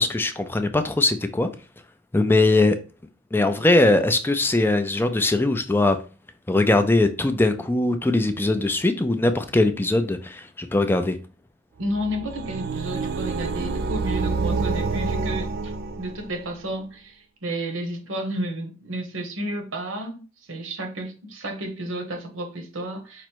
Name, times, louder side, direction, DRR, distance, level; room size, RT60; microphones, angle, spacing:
voice 1, 0.0-1.5 2.1-2.8 3.3-6.0 6.5-11.2, left 2 dB, 10° left, 0.3 m, -21 dB
sound 1, 11.8-16.5, right 4 dB, 55° right, 0.5 m, -28 dB
voice 2, 11.8-20.2 20.5-23.3, right 1 dB, 85° right, 1.1 m, -32 dB
5.0 x 2.1 x 4.5 m
head